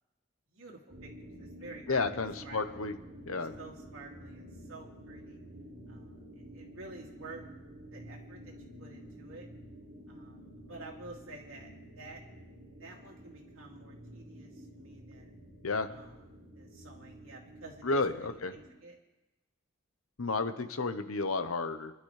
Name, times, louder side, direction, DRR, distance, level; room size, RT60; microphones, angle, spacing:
voice 1, 0.5-1.1 1.4-2.1 2.4-2.8 3.6-5.4 5.9-7.5 7.9-9.5 10.1-11.7 12.0-12.2 12.8-15.3 15.9-16.2 16.6-19.0, right 3 dB, 80° right, -2 dB, 2.7 m, -50 dB
sound 1, 0.9-18.7, equal, 60° right, 4.1 m, -50 dB
voice 2, 1.9-3.0 3.3-3.5 15.6-15.9 17.8-18.5 20.2-21.9, left 3 dB, 85° left, 9 dB, 1.0 m, -32 dB
29.5 x 11.5 x 3.3 m, 1.0 s
head